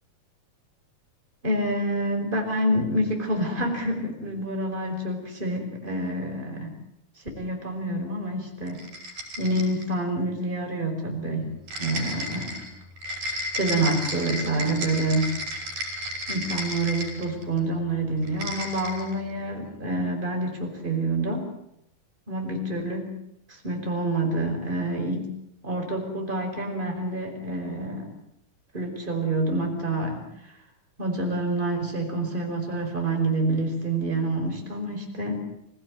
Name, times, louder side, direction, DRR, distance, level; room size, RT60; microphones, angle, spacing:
voice 1, 1.4-6.7 7.4-8.8 9.4-11.5 11.8-12.6 13.3-15.3 16.3-21.5 22.3-23.1 23.5-25.3 25.6-28.2 28.7-30.3 31.0-35.4, right 1 dB, 15° right, 2 dB, 5.3 m, -27 dB
sound 1, 8.7-9.9 11.7-17.6 18.2-19.1, equal, 65° right, 7.4 m, -33 dB
25.5 x 17.0 x 9.8 m, 0.80 s
omnidirectional pair, 4.0 m